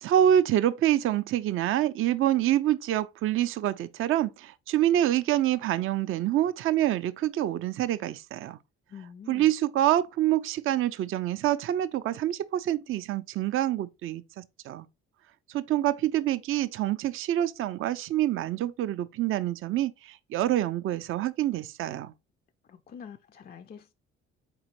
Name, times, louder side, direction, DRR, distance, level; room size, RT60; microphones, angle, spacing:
voice 1, 0.0-8.6 9.3-14.9 15.5-22.1, right 12 dB, 40° right, 0.4 m, -26 dB
voice 2, 8.9-9.5 22.6-23.9, left 7 dB, 30° left, 0.4 m, -46 dB
4.2 x 3.0 x 2.9 m
hypercardioid pair, 50°, 34 cm